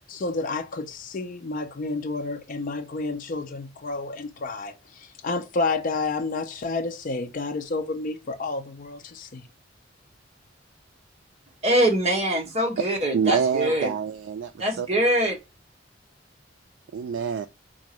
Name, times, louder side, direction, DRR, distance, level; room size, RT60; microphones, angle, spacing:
voice 1, 0.0-9.5, left 3 dB, 45° left, 0.4 m, -30 dB
voice 2, 11.6-13.9 14.6-15.4, right 1 dB, 35° right, 1.1 m, -23 dB
voice 3, 13.1-14.5 14.8-14.9 16.9-17.5, right 6 dB, 75° right, 0.3 m, -26 dB
3.6 x 2.5 x 2.9 m
head